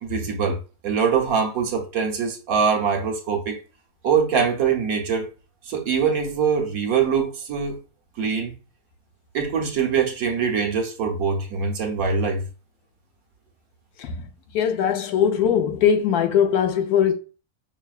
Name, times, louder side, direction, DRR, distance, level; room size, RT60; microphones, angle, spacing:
voice 1, 0.0-3.6 4.0-5.3 5.7-7.8 8.2-8.5 9.3-12.4, right 6 dB, 70° right, 1.2 m, -23 dB
voice 2, 14.0-14.3 14.5-17.1, left 8 dB, 85° left, 1.1 m, -20 dB
5.7 x 2.2 x 2.3 m
omnidirectional pair, 1.6 m